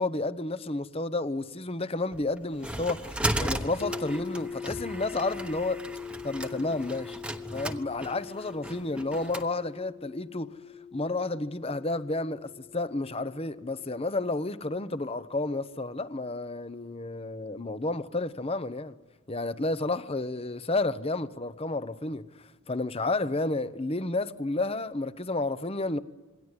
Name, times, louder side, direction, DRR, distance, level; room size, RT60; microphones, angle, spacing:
voice 1, 0.0-5.8 6.2-7.2 7.5-10.5 10.9-18.9 19.3-22.2 22.7-26.0, left 2 dB, 25° left, 0.8 m, -31 dB
sound 1, 2.1-9.5, right 1 dB, 5° right, 1.1 m, -36 dB
sound 2, 3.8-15.7, left 6 dB, 65° left, 2.3 m, -43 dB
27.0 x 22.5 x 9.7 m
head